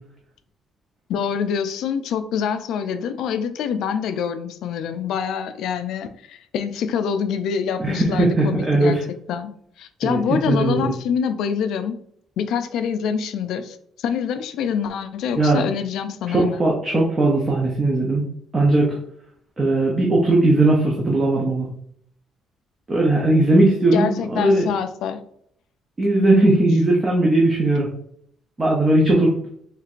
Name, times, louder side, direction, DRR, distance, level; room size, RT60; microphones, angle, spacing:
voice 1, 1.1-9.5 9.8-12.0 12.4-16.7 23.9-25.2, left 7 dB, 65° left, 0.4 m, -26 dB
voice 2, 7.8-9.0 10.0-10.9 15.3-15.6 16.3-18.2 18.5-19.0 19.6-21.7 22.9-24.7 26.0-27.9 28.6-29.4, right 2 dB, 20° right, 0.6 m, -18 dB
4.4 x 3.2 x 2.5 m
cardioid pair, 175°, 0 cm